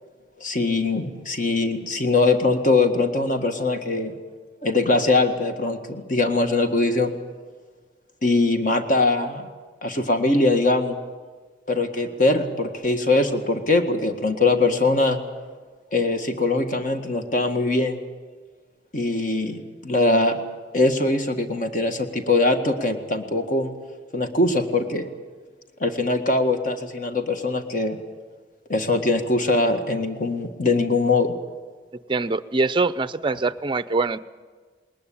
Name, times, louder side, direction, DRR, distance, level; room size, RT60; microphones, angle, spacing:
voice 1, 0.4-4.1 4.6-7.1 8.2-9.5 9.8-11.0 11.7-15.2 15.9-18.0 18.9-20.4 20.7-23.7 24.1-25.1 25.8-28.0 28.7-31.3, left 2 dB, 45° left, 6 dB, 1.7 m, -22 dB
voice 2, 32.1-34.2, right 3 dB, 25° right, 14 dB, 0.5 m, -23 dB
20.0 x 20.0 x 8.7 m, 1.5 s
head